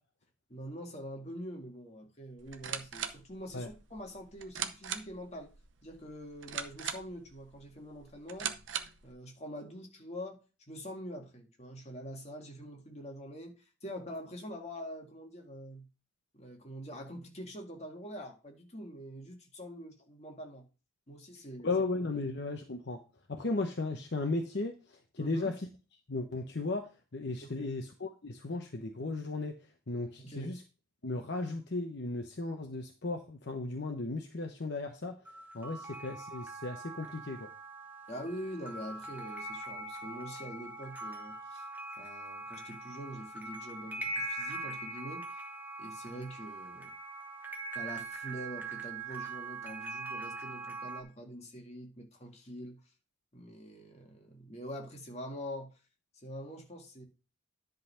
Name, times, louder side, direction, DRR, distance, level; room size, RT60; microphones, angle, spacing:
voice 1, 0.5-5.5 5.8-8.5 9.0-15.9 16.3-20.7 21.1-21.7 22.1-22.2 25.2-25.5 27.4-27.7 30.2-30.6 38.1-41.7 42.0-45.4 45.8-46.9 47.7-52.8 53.3-55.8 56.1-57.0, equal, 35° left, 2.0 m, -45 dB
sound 1, 2.4-9.1, right 8 dB, 70° right, 0.8 m, -41 dB
voice 2, 21.6-23.0 23.3-25.6 26.1-29.5 29.9-30.6 31.0-35.2 35.5-37.5, left 3 dB, 55° left, 0.9 m, -35 dB
sound 2, 35.3-51.0, right 3 dB, 10° right, 1.1 m, -42 dB
10.5 x 4.0 x 5.6 m
head